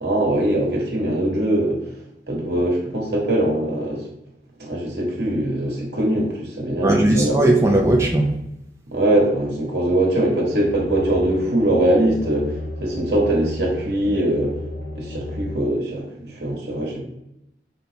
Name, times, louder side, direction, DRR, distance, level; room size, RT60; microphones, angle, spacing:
voice 1, 0.0-1.8 2.3-4.0 4.6-7.4 8.9-12.5 12.8-14.5 15.0-17.0, right 1 dB, 75° right, -2 dB, 1.6 m, -21 dB
voice 2, 6.8-8.3, right 1 dB, 15° right, 0 dB, 0.4 m, -17 dB
sound 1, 10.5-15.6, left 1 dB, 85° left, 0.6 m, -33 dB
5.7 x 2.3 x 4.0 m, 0.84 s
head